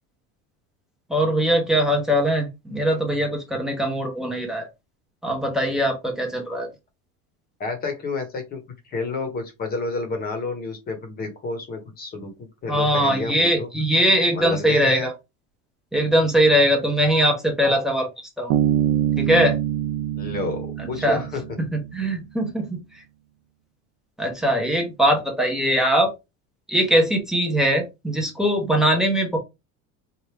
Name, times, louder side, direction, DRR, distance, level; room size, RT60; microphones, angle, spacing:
voice 1, 1.1-4.7 5.2-6.7 12.7-15.1 15.9-18.1 18.4-18.5 19.2-19.6 20.8-21.2 21.7-22.8 24.2-26.1 26.7-29.4, equal, ahead, 1 dB, 0.8 m, -21 dB
voice 2, 7.6-12.3 12.6-13.7 14.3-15.1 20.2-21.4, left 3 dB, 25° left, 6 dB, 1.0 m, -30 dB
Bass guitar, 18.5-21.9, right 11 dB, 50° right, 0.5 m, -24 dB
4.4 x 2.6 x 3.3 m, 0.24 s
cardioid pair, 170°, 36 cm